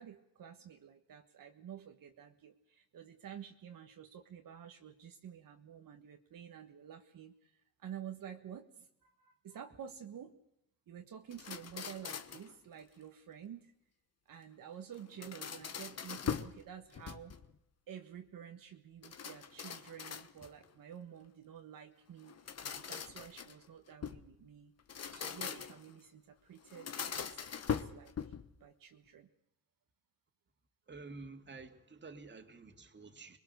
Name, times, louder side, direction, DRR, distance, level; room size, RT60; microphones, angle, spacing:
voice 1, 0.0-10.3 10.9-13.7 14.3-17.3 17.9-22.4 22.7-24.7 25.1-28.3 28.6-29.3, right 9 dB, 65° right, 1.5 m, -50 dB
sound 1, 11.3-12.5 14.9-16.6 16.9-17.6 19.0-20.6 22.2-24.3 24.8-25.9 26.7-28.5, left 7 dB, 45° left, 1.3 m, -41 dB
voice 2, 30.9-33.4, right 3 dB, 30° right, 2.4 m, -50 dB
26.5 x 21.0 x 6.7 m
cardioid pair, 100°, 36 cm